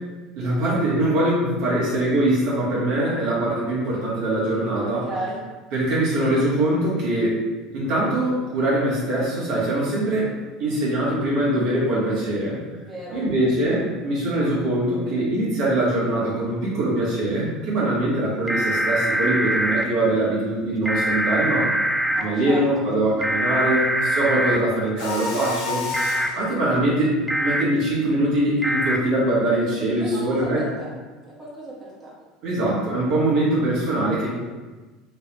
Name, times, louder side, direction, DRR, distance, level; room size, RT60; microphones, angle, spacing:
voice 1, 0.4-5.0 5.7-7.4 7.7-12.6 13.1-21.7 22.2-25.8 26.3-27.1 27.4-30.6 32.4-34.3, right 1 dB, 60° right, -7 dB, 1.4 m, -22 dB
voice 2, 4.8-5.4 12.8-13.3 22.1-22.9 30.0-30.9 31.3-32.1, right 1 dB, 20° right, -7 dB, 1.2 m, -35 dB
sound 1, 18.5-19.8 20.9-22.2 23.2-24.6 25.9-26.3 27.3-27.6 28.6-29.0, right 1 dB, ahead, 0.3 m, -23 dB
Mechanisms, 25.0-26.4, left 4 dB, 65° left, 0.6 m, -30 dB
3.2 x 3.0 x 3.0 m, 1.3 s
hypercardioid pair, 80°, 0 cm